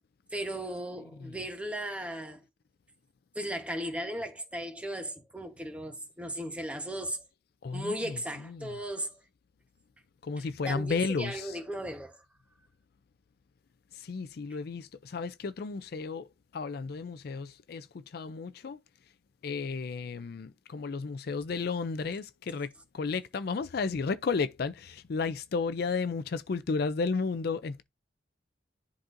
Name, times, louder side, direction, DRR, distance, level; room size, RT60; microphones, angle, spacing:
voice 1, 0.3-2.4 3.3-7.2 7.7-9.1 10.6-12.2, right 1 dB, 5° right, 1.0 m, -36 dB
voice 2, 7.6-8.8 10.2-11.6 13.9-18.8 19.4-27.8, left 4 dB, 60° left, 0.4 m, -33 dB
10.5 x 4.0 x 2.5 m
head